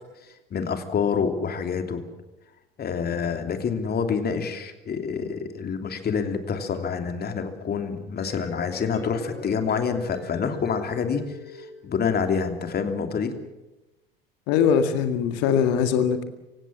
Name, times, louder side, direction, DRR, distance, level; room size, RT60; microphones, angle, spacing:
voice 1, 0.5-2.0 2.8-11.2 11.8-13.3, left 6 dB, 35° left, 7 dB, 3.1 m, -27 dB
sound 1, 8.0-12.3, left 4 dB, 85° left, 4.1 m, -41 dB
voice 2, 14.5-16.2, left 7 dB, 55° left, 9 dB, 2.0 m, -21 dB
26.5 x 16.5 x 7.5 m, 1.0 s
figure-of-eight pair, 75°, 29 cm